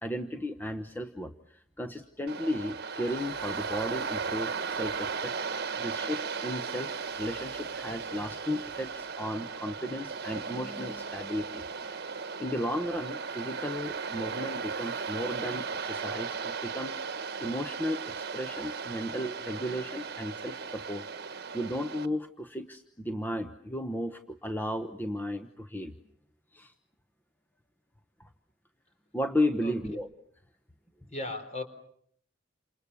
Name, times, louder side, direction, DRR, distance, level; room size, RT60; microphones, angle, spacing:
voice 1, 0.0-11.6 12.0-12.1 12.4-17.0 17.4-25.9 26.5-26.7 29.1-30.1, left 1 dB, 10° left, 7 dB, 1.1 m, -34 dB
Waves surf, 2.3-22.1, right 5 dB, 55° right, 1.2 m, -36 dB
voice 2, 29.6-30.0 31.1-31.6, left 2 dB, 35° left, 8 dB, 4.2 m, -37 dB
29.0 x 28.0 x 7.0 m, 0.66 s
head